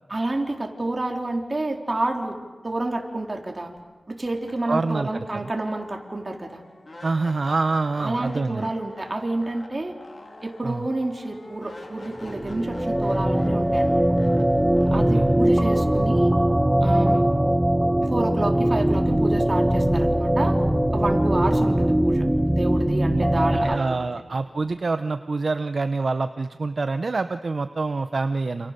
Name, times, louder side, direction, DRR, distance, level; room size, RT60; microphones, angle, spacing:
voice 1, 0.1-2.4 2.6-3.7 4.1-6.6 8.0-9.9 10.4-14.0 14.9-16.3 16.8-17.3 18.0-20.6 20.9-24.1, right 2 dB, 30° right, 2 dB, 3.8 m, -29 dB
sound 1, 3.8-3.9 4.2-17.3, left 1 dB, 40° left, 4.0 m, -46 dB
voice 2, 4.7-5.5 7.0-8.7 10.6-10.9 14.9-15.3 23.1-23.2 23.5-28.7, right 3 dB, 55° right, 9 dB, 0.8 m, -26 dB
sound 2, 12.2-23.7, right 1 dB, 10° right, 1.1 m, -21 dB
28.5 x 28.5 x 6.8 m, 1.3 s
wide cardioid pair, 90°, 0 cm